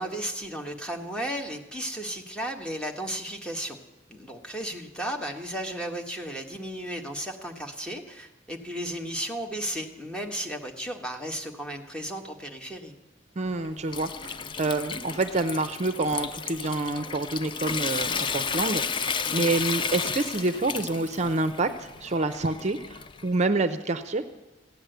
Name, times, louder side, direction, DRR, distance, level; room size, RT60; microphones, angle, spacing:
voice 1, 0.0-3.8 4.1-12.9 19.3-19.5, right 1 dB, 5° left, 3 dB, 1.4 m, -34 dB
voice 2, 13.4-24.2, right 2 dB, 40° right, 10 dB, 0.6 m, -27 dB
Water tap faucet / Sink (filling or washing) / Trickle dribble, 13.5-23.4, left 6 dB, 25° left, 0.4 m, -33 dB
15.0 x 9.7 x 7.9 m, 1.0 s
head